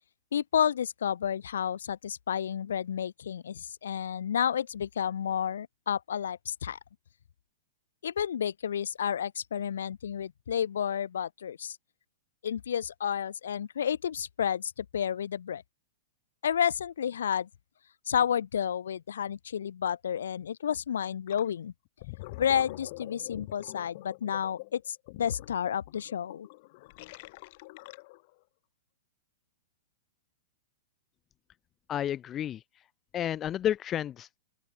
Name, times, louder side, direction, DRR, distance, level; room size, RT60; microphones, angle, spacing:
voice 1, 0.3-6.8 8.0-11.8 12.4-15.6 16.4-17.5 18.1-21.7 22.4-26.5, left 8 dB, 80° left, 1.0 m, -31 dB
Gurgling, 21.3-21.5 21.9-28.3, left 22 dB, 55° left, 3.4 m, -45 dB
voice 2, 31.9-32.6 33.1-34.4, left 10 dB, 25° left, 0.3 m, -31 dB
open air
hypercardioid pair, 120°, 0 cm